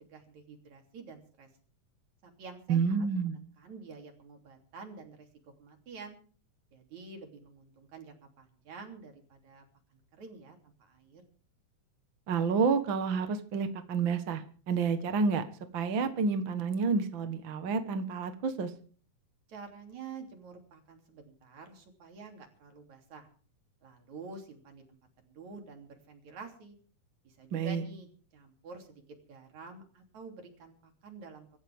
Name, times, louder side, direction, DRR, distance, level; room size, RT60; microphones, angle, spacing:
voice 1, 0.0-1.5 2.2-5.3 5.6-6.2 6.7-9.6 9.9-11.2 19.5-23.3 23.8-25.0 25.2-26.8 27.2-29.0 29.3-31.5, right 4 dB, 65° right, 4 dB, 4.5 m, -49 dB
voice 2, 2.7-3.4 12.3-15.4 15.7-18.7 27.5-27.8, right 5 dB, 50° right, 8 dB, 1.7 m, -29 dB
25.0 x 14.0 x 3.6 m, 0.43 s
omnidirectional pair, 3.5 m